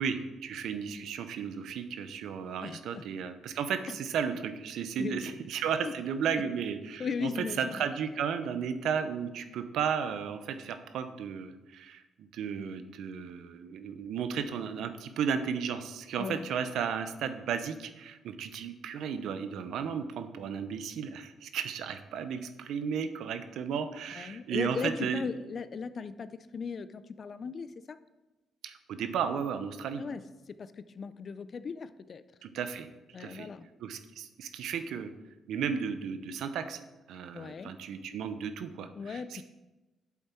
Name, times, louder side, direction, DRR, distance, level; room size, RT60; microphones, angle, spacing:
voice 1, 0.0-25.2 28.6-30.0 32.4-32.9 33.2-33.5 33.8-35.1 35.5-36.8 37.1-39.4, right 7 dB, 80° right, 10 dB, 0.7 m, -34 dB
voice 2, 2.6-3.0 3.9-4.0 5.0-5.4 7.0-7.8 16.2-16.5 24.2-28.0 30.0-30.2 30.6-32.2 33.1-33.7 37.3-37.7 39.0-39.4, left 5 dB, 45° left, 13 dB, 0.4 m, -37 dB
8.2 x 7.2 x 4.4 m, 1.1 s
cardioid pair, 90°, 0 cm